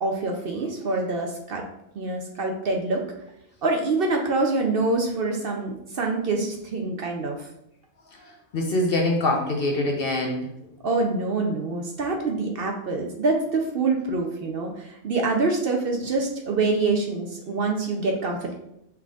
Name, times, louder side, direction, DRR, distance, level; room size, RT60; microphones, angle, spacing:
voice 1, 0.0-1.6 2.0-3.0 3.6-7.5 10.8-18.5, right 3 dB, 55° right, 1 dB, 0.7 m, -25 dB
voice 2, 8.1-10.5, left 1 dB, 55° left, 1 dB, 0.7 m, -24 dB
5.6 x 3.8 x 2.4 m, 0.80 s
omnidirectional pair, 1.3 m